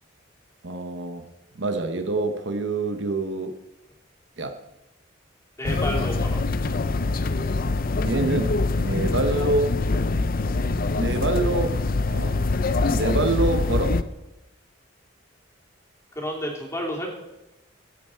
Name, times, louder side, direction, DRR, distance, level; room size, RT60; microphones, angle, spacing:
voice 1, 0.6-1.2 1.5-3.6 4.4-4.6 8.0-9.7 10.9-11.8 12.1-12.4 12.9-14.0, right 2 dB, 65° right, 7 dB, 1.0 m, -26 dB
sound 1, 5.6-14.0, left 3 dB, 45° left, 0.6 m, -24 dB
voice 2, 5.6-6.4 16.1-17.1, equal, 15° left, -2 dB, 3.1 m, -30 dB
15.0 x 9.2 x 4.5 m, 0.96 s
head